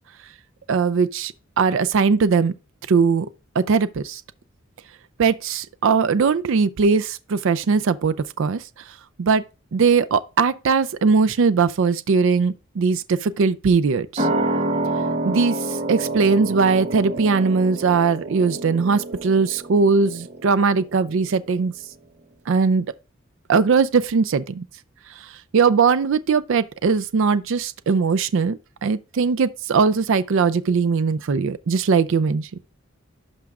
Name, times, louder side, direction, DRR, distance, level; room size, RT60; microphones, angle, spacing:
voice 1, 0.7-2.5 2.9-3.3 3.6-4.2 5.2-8.6 9.2-9.4 9.7-14.3 15.2-15.6 15.9-21.7 22.5-22.8 23.5-24.6 25.5-32.5, right 5 dB, 65° right, 0.4 m, -20 dB
sound 1, 14.2-21.2 21.5-21.6, right 2 dB, 35° right, 0.9 m, -28 dB
11.5 x 5.1 x 2.4 m
head